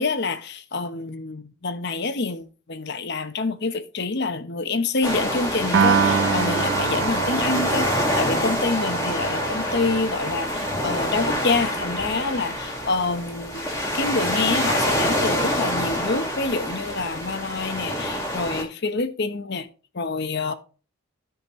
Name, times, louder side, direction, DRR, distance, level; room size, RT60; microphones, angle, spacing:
voice 1, 0.0-19.7 19.9-20.5, left 3 dB, 50° left, 0.9 m, -27 dB
sound 1, 5.0-18.6, equal, 15° left, 1.9 m, -26 dB
Piano, 5.7-12.1, right 6 dB, 60° right, 0.4 m, -27 dB
13.5 x 5.2 x 3.0 m
head